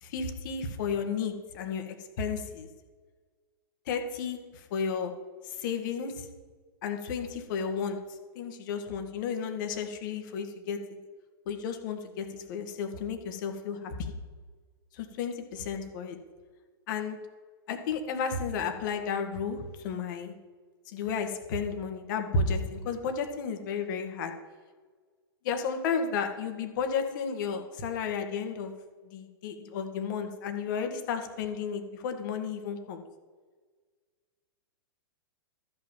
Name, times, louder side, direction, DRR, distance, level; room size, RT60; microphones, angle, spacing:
voice 1, 0.0-2.7 3.9-5.1 5.4-6.3 6.8-10.8 11.5-14.1 14.9-16.2 16.9-17.2 17.7-20.4 20.9-24.3 25.4-28.7 29.0-33.0, left 5 dB, 55° left, 5 dB, 1.8 m, -33 dB
13.5 x 5.9 x 7.4 m, 1.5 s
hypercardioid pair, 110°, 13 cm